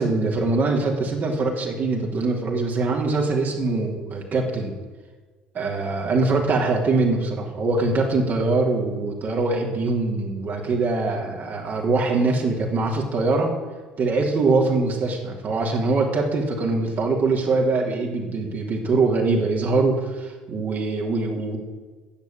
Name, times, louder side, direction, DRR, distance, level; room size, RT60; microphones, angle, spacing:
voice 1, 0.0-4.7 5.5-13.5 14.0-21.6, right 3 dB, 50° right, 0 dB, 3.1 m, -23 dB
10.5 x 7.3 x 8.8 m, 1.4 s
hypercardioid pair, 70°, 4 cm